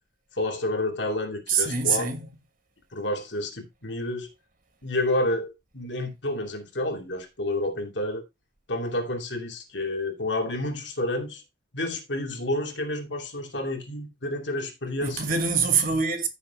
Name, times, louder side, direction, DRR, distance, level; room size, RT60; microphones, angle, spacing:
voice 1, 0.4-2.1 2.9-4.3 4.8-8.2 8.7-11.4 11.7-15.4, left 1 dB, 75° left, 2.6 m, -29 dB
voice 2, 1.5-2.2 15.0-16.3, right 5 dB, 50° right, 2.4 m, -24 dB
14.5 x 7.1 x 2.3 m
head